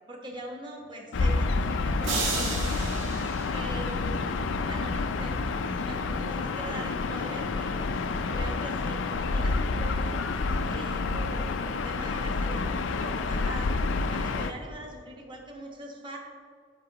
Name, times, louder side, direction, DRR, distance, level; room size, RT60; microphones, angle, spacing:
voice 1, 0.1-2.9 3.5-5.4 5.8-13.8 14.1-16.2, right 1 dB, 25° right, 1 dB, 1.2 m, -42 dB
Gull seagull / Ocean, 1.1-14.5, left 3 dB, 80° left, 0.4 m, -29 dB
sound 1, 2.0-4.3, right 4 dB, 90° right, 1.4 m, -33 dB
9.8 x 7.6 x 2.9 m, 2.2 s
head